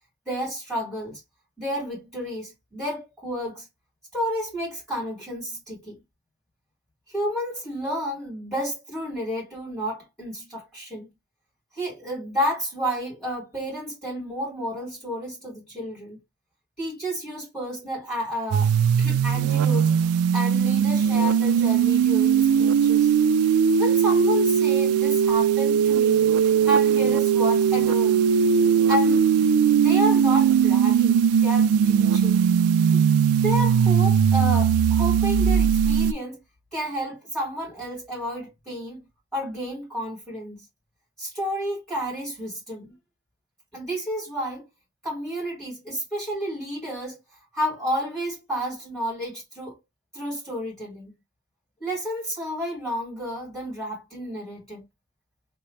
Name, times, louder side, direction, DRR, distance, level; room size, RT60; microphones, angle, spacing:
voice 1, 0.3-1.2 1.6-3.7 4.1-6.0 7.1-11.1 11.7-16.2 16.8-18.7 19.0-19.9 20.3-23.1 23.7-26.3 26.6-28.2 28.9-32.4 32.9-33.0 33.4-36.4 36.7-39.0 39.3-40.6 41.2-43.0 43.7-44.6 45.0-47.2 47.5-49.8 50.1-51.1 51.8-54.8, equal, ahead, 2.5 m, -31 dB
sound 1, 18.5-36.1, right 7 dB, 85° right, 0.3 m, -19 dB
3.8 x 2.9 x 3.2 m
head